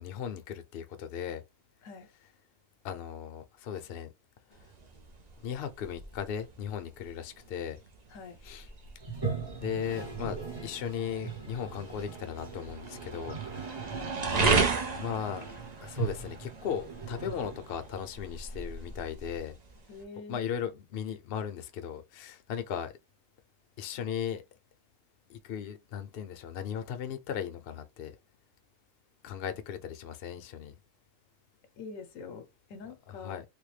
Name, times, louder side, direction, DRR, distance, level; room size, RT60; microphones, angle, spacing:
voice 1, 0.0-1.4 2.8-4.1 5.4-7.8 8.5-8.6 9.6-13.9 14.2-14.6 14.9-15.5 15.8-19.5 20.3-22.9 23.8-24.4 25.3-28.1 29.2-30.7 33.2-33.4, left 8 dB, 55° left, 0.7 m, -37 dB
sound 1, 4.5-20.0, right 4 dB, 50° right, 0.5 m, -35 dB
Toilet flush, 9.0-18.1, right 5 dB, 20° right, 0.8 m, -40 dB
voice 2, 13.9-14.2 19.9-20.4 31.8-33.4, left 4 dB, 80° left, 1.1 m, -45 dB
3.4 x 2.2 x 3.1 m
omnidirectional pair, 1.4 m